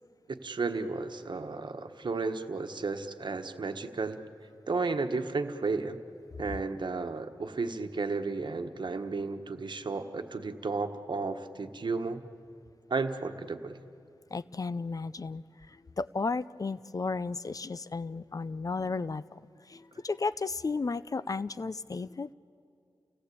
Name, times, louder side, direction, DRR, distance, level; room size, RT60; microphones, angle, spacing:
voice 1, 0.3-4.2 4.7-6.0 6.4-12.2 12.9-13.8, right 4 dB, 65° right, 7 dB, 1.4 m, -33 dB
voice 2, 14.3-15.4 16.0-19.4 19.7-22.3, left 4 dB, 45° left, 16 dB, 0.5 m, -33 dB
29.5 x 18.0 x 8.5 m, 2.5 s
wide cardioid pair, 80°, 8 cm